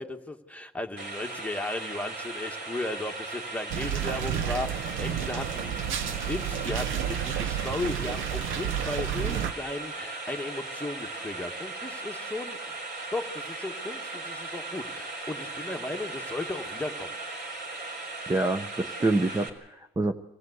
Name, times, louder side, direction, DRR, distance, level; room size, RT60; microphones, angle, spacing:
voice 1, 0.0-12.6 13.1-17.1, left 2 dB, 5° left, 4 dB, 1.6 m, -36 dB
sound 1, 1.0-19.5, right 3 dB, 55° right, 4.1 m, -38 dB
sound 2, 3.7-9.5, right 9 dB, 85° right, 0.8 m, -31 dB
voice 2, 18.3-20.1, right 2 dB, 15° right, 6 dB, 0.9 m, -27 dB
24.5 x 15.5 x 8.0 m, 0.99 s
cardioid pair, 90°, 20 cm